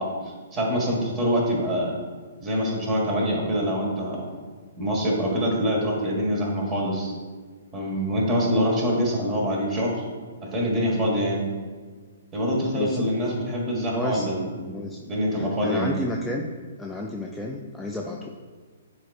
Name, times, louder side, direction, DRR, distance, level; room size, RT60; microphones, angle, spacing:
voice 1, 0.0-2.0 2.4-4.3 4.8-7.1 7.7-10.0 10.4-11.5 12.3-14.8 15.1-16.0, equal, 20° right, -1 dB, 1.7 m, -25 dB
voice 2, 12.7-13.1 13.9-15.0 15.3-16.5 16.8-18.3, left 1 dB, 5° left, -1 dB, 0.4 m, -31 dB
10.0 x 4.2 x 2.5 m, 1.5 s
figure-of-eight pair, 120°, 0 cm